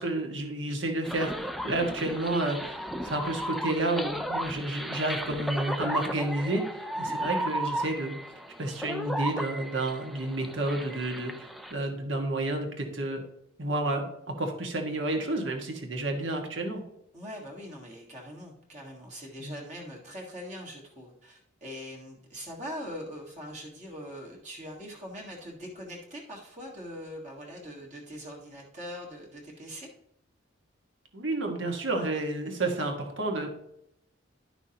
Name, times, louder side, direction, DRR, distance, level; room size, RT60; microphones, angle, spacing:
voice 1, 0.0-1.3 1.6-6.6 7.0-8.1 8.6-13.2 13.6-14.0 14.4-16.8 19.4-19.6 31.1-33.5, right 2 dB, 65° right, 2 dB, 1.6 m, -30 dB
sound 1, 1.0-11.7, equal, ahead, 0.4 m, -35 dB
voice 2, 17.1-29.9, equal, 35° right, -2 dB, 1.6 m, -42 dB
11.0 x 6.0 x 2.9 m, 0.77 s
head